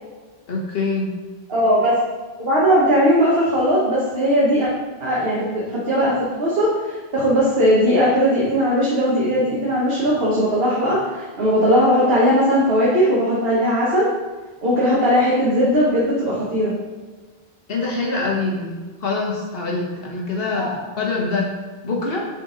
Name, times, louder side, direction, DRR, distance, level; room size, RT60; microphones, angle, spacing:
voice 1, 0.5-1.1 17.7-21.5 21.8-22.3, left 3 dB, 65° left, -2 dB, 1.1 m, -24 dB
voice 2, 1.5-2.0 2.4-4.7 5.0-6.1 6.4-14.1 14.6-16.7 20.5-20.7, equal, 65° right, -6 dB, 1.3 m, -18 dB
6.7 x 3.9 x 3.8 m, 1.3 s
omnidirectional pair, 1.1 m